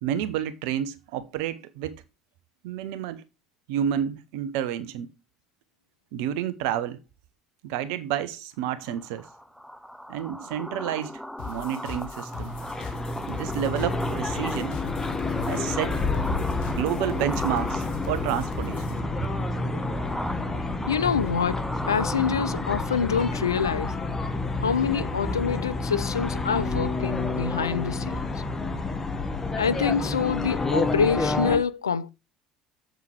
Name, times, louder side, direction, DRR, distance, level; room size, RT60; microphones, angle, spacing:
voice 1, 0.0-2.0 2.6-3.2 3.7-5.1 6.1-7.0 7.6-9.3 10.1-12.9 13.3-14.8 15.4-15.9 16.7-19.0, right 10 dB, 70° right, 1.0 m, -30 dB
sound 1, 8.8-24.1, equal, ahead, 0.7 m, -38 dB
sound 2, 11.4-19.0, left 6 dB, 60° left, 1.5 m, -40 dB
sound 3, 12.2-31.6, left 3 dB, 20° left, 1.6 m, -29 dB
voice 2, 20.9-24.0 24.6-28.3 29.6-32.1, left 6 dB, 90° left, 0.4 m, -26 dB
7.6 x 7.1 x 3.3 m
hypercardioid pair, 60°, 2 cm